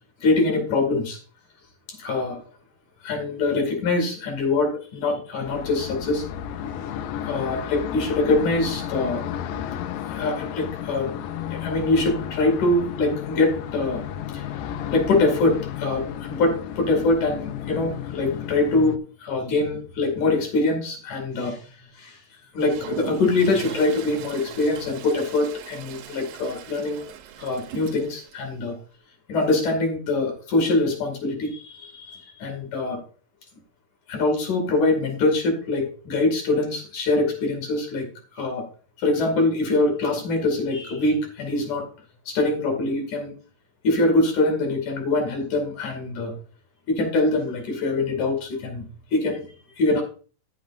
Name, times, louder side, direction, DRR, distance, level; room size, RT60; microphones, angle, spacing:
voice 1, 0.2-1.2 2.0-2.4 3.0-6.2 6.6-7.0 7.3-9.2 10.1-11.2 11.5-14.0 14.3-14.5 14.9-21.7 22.0-22.2 22.5-27.0 27.4-28.8 29.3-33.0 34.1-38.1 38.3-38.6 39.0-41.9 42.3-43.3 43.8-46.3 46.9-48.8 49.1-49.5 49.8-50.0, left 2 dB, 60° left, 4 dB, 3.8 m, -23 dB
sound 1, 5.4-19.0, left 10 dB, 80° left, 2.4 m, -33 dB
Toilet flush, 22.6-28.4, right 9 dB, 80° right, 2.7 m, -39 dB
15.0 x 7.3 x 2.6 m, 0.39 s
omnidirectional pair, 4.1 m